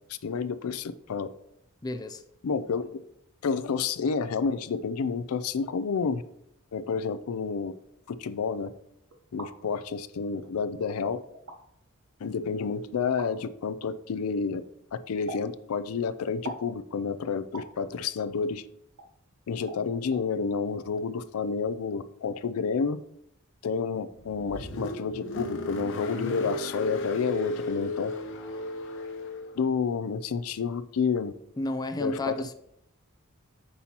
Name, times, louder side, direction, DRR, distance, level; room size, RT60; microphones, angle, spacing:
voice 1, 0.1-1.3 2.4-3.0 3.4-6.2 6.7-7.7 8.2-8.7 9.3-11.2 12.2-14.6 15.1-18.6 19.5-23.0 23.6-28.1 29.6-31.3 32.0-32.3, left 5 dB, 80° left, 0.4 m, -29 dB
voice 2, 1.8-2.2 31.6-32.5, left 2 dB, 20° left, 0.4 m, -31 dB
sound 1, 9.1-9.5 10.4-10.5 11.3-11.6 13.2-13.3 15.3-15.5 16.4-16.7 17.5-17.7 19.0-19.1 19.7-19.8 20.1-20.2, right 1 dB, 65° right, 1.0 m, -40 dB
Car, 24.1-29.6, left 1 dB, 60° left, 0.9 m, -36 dB
8.5 x 5.5 x 2.9 m
head